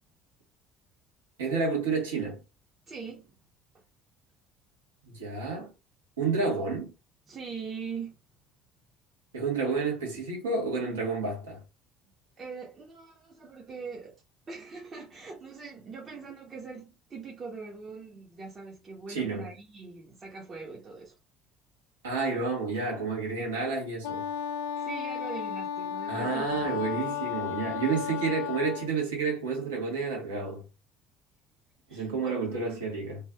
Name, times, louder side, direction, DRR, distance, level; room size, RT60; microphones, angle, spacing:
voice 1, 1.4-2.4 5.1-5.7 6.2-6.9 9.3-11.6 19.1-19.5 22.0-24.2 26.1-30.6 31.9-33.2, right 4 dB, 80° right, 1.2 m, -30 dB
voice 2, 2.9-3.4 7.3-8.2 12.4-14.1 14.5-21.1 24.8-27.0 31.9-32.8, right 5 dB, 40° right, 0.9 m, -42 dB
Wind instrument woodwind instrument, 24.0-28.9, left 9 dB, 75° left, 0.3 m, -34 dB
3.0 x 2.5 x 2.3 m
hypercardioid pair, 60°, 0 cm